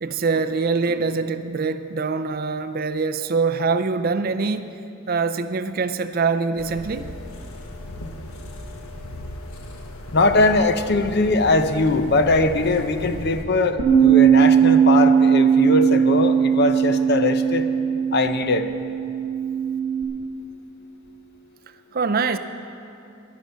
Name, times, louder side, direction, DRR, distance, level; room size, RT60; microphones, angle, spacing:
voice 1, 0.0-4.7 5.1-7.1 21.9-22.4, right 4 dB, 45° right, 0.5 m, -24 dB
sound 1, 6.6-13.4, left 1 dB, 85° left, 1.3 m, -37 dB
voice 2, 10.1-17.6 18.1-18.7, left 2 dB, 50° left, 0.7 m, -21 dB
Bass guitar, 13.8-20.0, right 8 dB, 75° right, 1.3 m, -18 dB
21.5 x 7.4 x 5.5 m
head